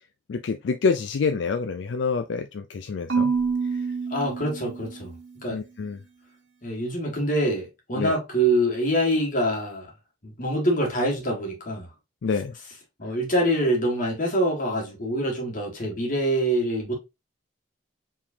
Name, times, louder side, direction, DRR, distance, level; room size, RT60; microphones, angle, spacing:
voice 1, 0.3-3.3 3.7-3.9 5.5-6.0 8.0-8.1 12.2-12.5, left 5 dB, 75° left, 0.4 m, -27 dB
Marimba xylophone / Wood, 3.1-5.3, right 5 dB, 65° right, 1.2 m, -27 dB
voice 2, 4.1-5.1 5.4-5.6 6.6-9.9 10.2-11.9 13.0-16.9, right 1 dB, 45° left, 1.8 m, -25 dB
4.8 x 3.7 x 2.7 m
head